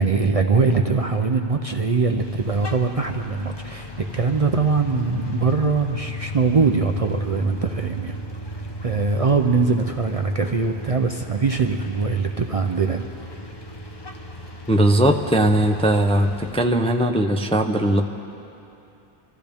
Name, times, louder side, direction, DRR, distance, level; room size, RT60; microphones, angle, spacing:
voice 1, 0.0-8.1 8.8-13.1, right 4 dB, 45° right, 5 dB, 0.5 m, -22 dB
sound 1, 2.2-16.6, left 1 dB, 25° left, 0.9 m, -35 dB
voice 2, 14.7-18.0, right 1 dB, 10° left, 4 dB, 0.5 m, -19 dB
25.5 x 14.5 x 3.5 m, 2.8 s
omnidirectional pair, 1.1 m